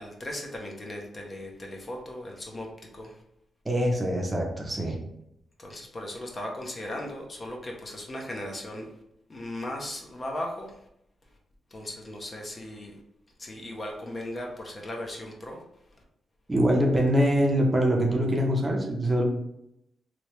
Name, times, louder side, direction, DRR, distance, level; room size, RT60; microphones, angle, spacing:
voice 1, 0.0-3.2 5.6-8.9 9.3-10.9 11.7-13.0 13.4-15.6 15.9-16.0, left 1 dB, 30° left, 0 dB, 0.6 m, -37 dB
voice 2, 3.6-5.0 16.5-19.2, equal, 15° right, 0 dB, 0.6 m, -24 dB
3.1 x 2.7 x 3.0 m, 0.81 s
wide cardioid pair, 140°, 0 cm